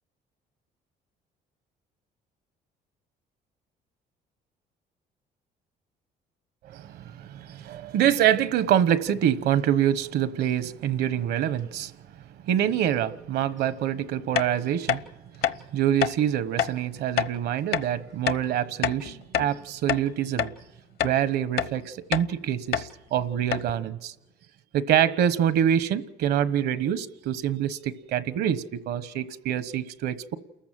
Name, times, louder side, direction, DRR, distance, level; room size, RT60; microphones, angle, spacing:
voice 1, 6.6-11.9 12.4-15.0 15.7-20.5 21.0-24.1 24.7-30.4, right 10 dB, 75° right, 1.1 m, -25 dB
sound 1, 14.3-14.5 14.9-15.0 15.4-15.6 16.0-16.1 16.6-16.7 17.2-17.3 17.7-17.9 18.3-18.4 18.8-19.5 19.9-20.0 20.4-20.5 21.0-21.2 21.6-21.7 22.1-22.3 22.7-22.9 23.2-23.3 23.5-23.7, left 9 dB, 65° left, 0.9 m, -26 dB
29.0 x 14.5 x 7.6 m
cardioid pair, 110°, 17 cm